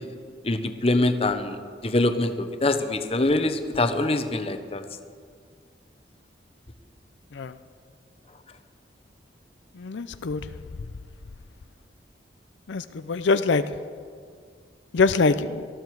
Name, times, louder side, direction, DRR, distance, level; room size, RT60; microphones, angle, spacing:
voice 1, 0.4-1.6 1.8-4.8, left 2 dB, 30° left, 8 dB, 0.9 m, -24 dB
voice 2, 9.8-10.4 12.7-13.6 14.9-15.6, left 4 dB, 80° left, 12 dB, 0.5 m, -23 dB
19.0 x 14.0 x 4.7 m, 2.1 s
head